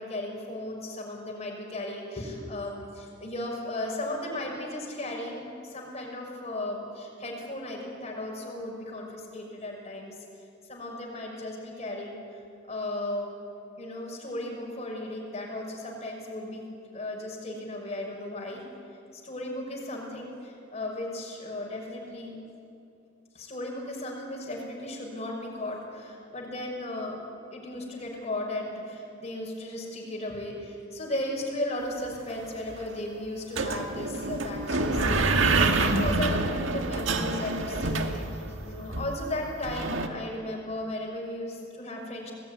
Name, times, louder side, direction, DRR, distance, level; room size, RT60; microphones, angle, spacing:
voice 1, 0.0-10.2 10.7-12.2 12.7-13.3 13.8-16.6 16.9-18.6 19.1-22.3 23.3-27.2 27.5-42.3, left 1 dB, 35° left, 0 dB, 5.9 m, -36 dB
sound 1, 32.1-32.2 32.4-32.8 33.6-40.1, right 3 dB, 75° right, 1.8 m, -27 dB
26.5 x 19.0 x 9.7 m, 2.6 s
head